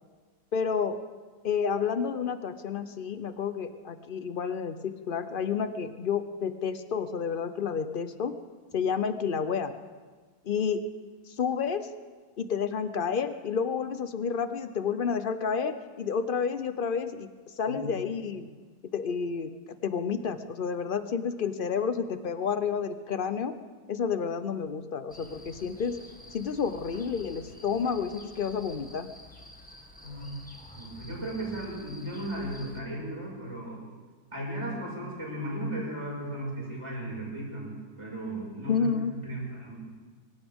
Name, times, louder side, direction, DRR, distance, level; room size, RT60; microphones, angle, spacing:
voice 1, 0.5-1.0 1.4-8.3 8.7-9.7 10.4-10.8 11.3-11.9 12.4-18.5 18.9-19.5 19.8-23.5 23.9-26.0 26.3-29.1 38.7-39.1, left 6 dB, 60° left, 10 dB, 0.5 m, -30 dB
sound 1, 25.1-32.8, left 1 dB, 5° left, 1.6 m, -49 dB
voice 2, 30.7-33.8 34.3-38.8 39.2-39.8, right 1 dB, 15° right, -4 dB, 5.7 m, -36 dB
24.5 x 16.0 x 3.6 m, 1.4 s
omnidirectional pair, 1.8 m